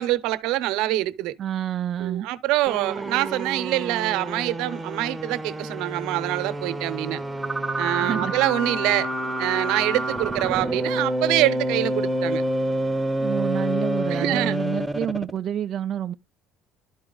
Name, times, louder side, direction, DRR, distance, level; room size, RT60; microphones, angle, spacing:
voice 1, 0.0-1.3 2.0-7.2 7.8-9.1 9.4-12.4 14.1-14.6, right 16 dB, 80° right, 0.8 m, -25 dB
voice 2, 1.4-2.3 8.0-8.3 13.2-16.1, right 10 dB, 40° right, 0.4 m, -28 dB
sound 1, 2.7-15.4, right 1 dB, 10° right, 0.8 m, -28 dB
12.0 x 4.4 x 3.9 m
cardioid pair, 145°, 0 cm